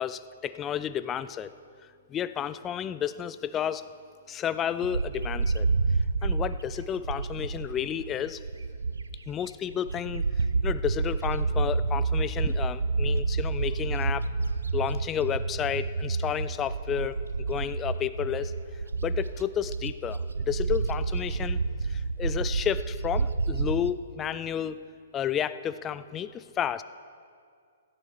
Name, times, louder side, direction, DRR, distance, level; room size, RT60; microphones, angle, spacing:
voice 1, 0.0-1.5 2.1-3.9 4.3-5.7 6.2-8.4 9.3-14.3 14.7-17.2 17.5-18.5 19.0-24.8 25.1-26.8, left 9 dB, 20° left, 14 dB, 0.4 m, -31 dB
Bird, 4.8-9.3 9.7-23.9, right 4 dB, 85° right, 0.6 m, -29 dB
16.0 x 11.5 x 4.8 m, 2.2 s
hypercardioid pair, 125°, 0 cm